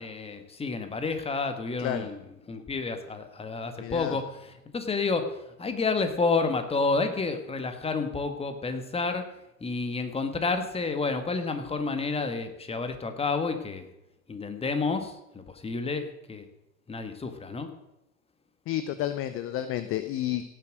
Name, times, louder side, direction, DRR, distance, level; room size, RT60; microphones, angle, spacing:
voice 1, 0.0-2.2 2.5-9.3 9.6-13.9 14.3-16.5 16.9-17.7, left 4 dB, 15° left, 7 dB, 1.7 m, -30 dB
voice 2, 3.8-4.2 18.7-20.4, left 12 dB, 30° left, 12 dB, 0.8 m, -31 dB
17.0 x 7.6 x 6.4 m, 0.88 s
figure-of-eight pair, 90°, 42 cm